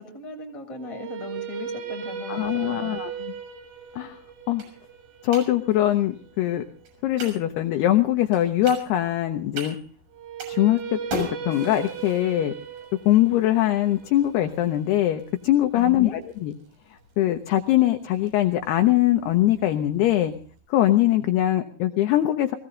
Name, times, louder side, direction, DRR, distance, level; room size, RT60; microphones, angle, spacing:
voice 1, 0.0-3.3 15.7-16.2, left 3 dB, 10° left, 1 dB, 1.7 m, -38 dB
sound 1, 0.8-6.9 10.1-16.2, right 8 dB, 75° right, 4.0 m, -37 dB
voice 2, 2.3-3.1 4.0-4.2 4.5-4.6 5.2-6.6 7.0-9.8 10.5-12.5 13.1-16.5 17.2-20.3 20.7-22.6, left 13 dB, 85° left, 6 dB, 2.3 m, -22 dB
sound 2, 2.7-20.6, right 1 dB, 50° right, 8.2 m, -43 dB
22.0 x 16.0 x 3.8 m, 0.40 s
omnidirectional pair, 5.8 m